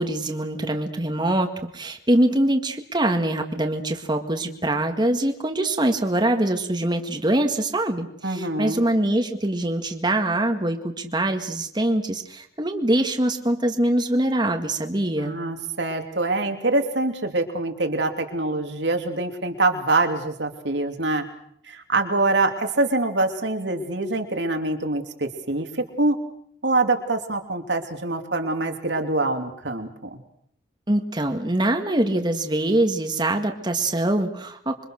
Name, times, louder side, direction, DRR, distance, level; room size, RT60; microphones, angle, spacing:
voice 1, 0.0-15.4 30.9-34.8, right 1 dB, 25° right, 4 dB, 1.9 m, -23 dB
voice 2, 8.2-8.8 15.2-21.3 21.6-26.2 26.6-30.2, right 2 dB, 75° right, 5 dB, 3.0 m, -25 dB
27.0 x 24.0 x 6.5 m, 0.67 s
head